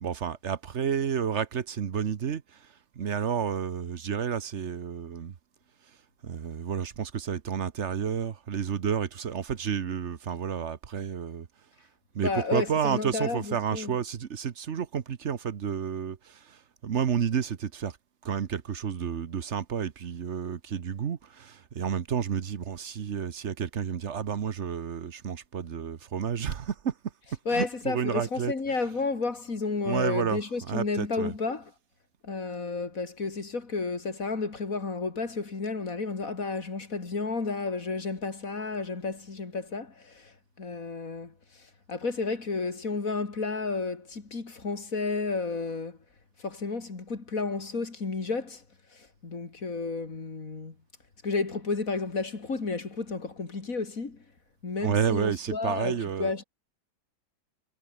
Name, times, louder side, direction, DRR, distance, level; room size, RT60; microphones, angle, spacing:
voice 1, 0.0-5.3 6.2-11.5 12.1-18.0 18.2-26.9 27.5-28.8 29.9-31.3 54.8-56.3, right 7 dB, 45° right, 1.0 m, -31 dB
voice 2, 12.2-13.9 27.4-31.7 32.2-46.0 46.4-48.6 48.9-50.7 51.2-54.2 54.6-56.4, left 4 dB, 40° left, 3.3 m, -32 dB
omnidirectional pair, 2.2 m